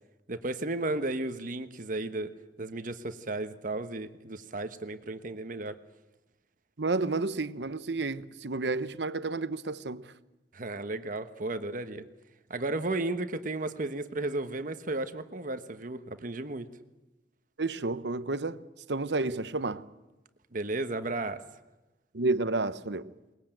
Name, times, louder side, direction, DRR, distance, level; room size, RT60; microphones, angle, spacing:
voice 1, 0.3-2.3 2.6-5.7 10.5-12.0 12.5-16.7 20.5-21.4, right 2 dB, 50° right, 1.2 m, -34 dB
voice 2, 6.8-10.0 17.6-18.6 18.9-19.8 22.1-23.1, right 3 dB, 75° right, 0.9 m, -30 dB
22.0 x 20.5 x 9.0 m
head